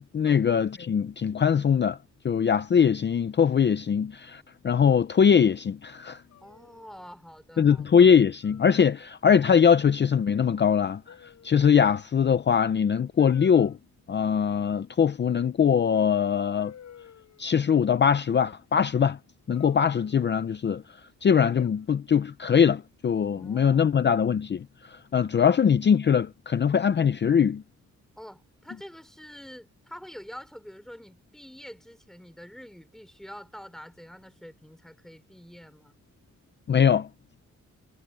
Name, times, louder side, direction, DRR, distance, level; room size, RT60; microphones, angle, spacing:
voice 1, 0.0-2.0 2.2-6.2 7.6-11.1 11.4-13.8 14.1-16.7 17.4-19.2 19.5-20.8 21.2-27.6 36.7-37.1, left 7 dB, 35° left, 0.5 m, -22 dB
sound 1, 6.3-7.2 8.4-8.8 9.3-9.6 11.1-11.7 13.2-13.8 15.7-15.8 16.6-17.6 19.5-20.6 21.6-22.2 23.4-24.0, left 9 dB, 65° left, 5.3 m, -52 dB
voice 2, 6.4-8.1 23.3-23.9 25.4-25.6 28.2-35.9, equal, ahead, 5.4 m, -46 dB
wide cardioid pair, 175°, 30 cm